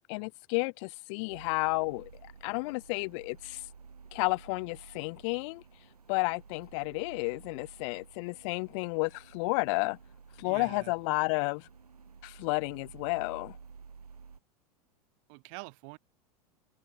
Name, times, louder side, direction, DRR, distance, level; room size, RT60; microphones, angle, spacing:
voice 1, 0.1-3.7 4.1-5.6 6.1-10.0 10.4-11.7 12.2-13.6, left 30 dB, 55° left, 0.7 m, -32 dB
sound 1, 1.3-14.4, right 5 dB, 90° right, 4.4 m, -53 dB
voice 2, 10.4-10.9 15.3-16.0, right 36 dB, 55° right, 3.5 m, -45 dB
hypercardioid pair, 90°, 19 cm